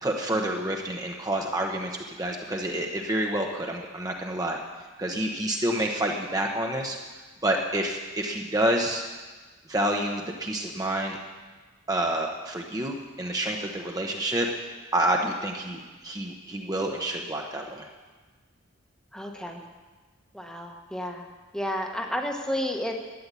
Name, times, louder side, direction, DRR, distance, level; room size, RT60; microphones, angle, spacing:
voice 1, 0.0-4.6 5.0-7.0 7.4-9.0 9.7-11.2 11.9-14.5 14.9-17.9, right 1 dB, 20° right, 1 dB, 0.9 m, -28 dB
voice 2, 19.1-19.6 20.3-21.3 21.5-23.0, left 1 dB, 5° left, 2 dB, 1.1 m, -31 dB
12.5 x 9.5 x 8.3 m, 1.3 s
head